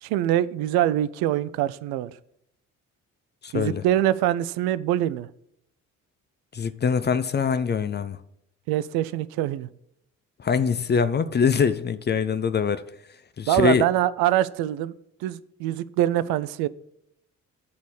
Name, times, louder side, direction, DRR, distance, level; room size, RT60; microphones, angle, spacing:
voice 1, 0.0-2.1 3.5-5.3 8.7-9.7 13.5-14.9 15.2-16.7, right 12 dB, 60° right, 0.5 m, -24 dB
voice 2, 3.4-3.8 6.5-8.2 10.4-12.8 13.4-13.9, left 6 dB, 25° left, 0.5 m, -23 dB
9.5 x 4.1 x 6.9 m
figure-of-eight pair, 40°, 43 cm